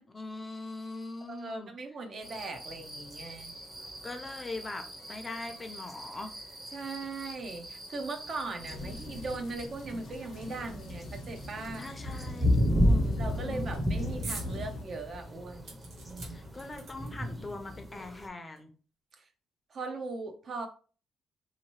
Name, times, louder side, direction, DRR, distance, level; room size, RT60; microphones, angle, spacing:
voice 1, 0.1-1.7 4.0-6.3 11.8-13.7 16.3-18.7, left 2 dB, 25° left, 6 dB, 0.6 m, -41 dB
voice 2, 1.3-3.5 6.7-11.9 13.2-16.6 19.2-19.3 19.7-20.7, right 3 dB, 50° right, 5 dB, 0.7 m, -39 dB
sound 1, 2.2-18.3, equal, 15° right, 0.7 m, -34 dB
sound 2, 8.6-14.8, left 2 dB, 85° left, 0.7 m, -41 dB
sound 3, 14.2-14.5 14.9-15.0 15.7-17.3 18.2-18.3 18.6-18.7, right 3 dB, 80° right, 1.1 m, -43 dB
2.8 x 2.6 x 3.0 m, 0.38 s
cardioid pair, 90°, 0 cm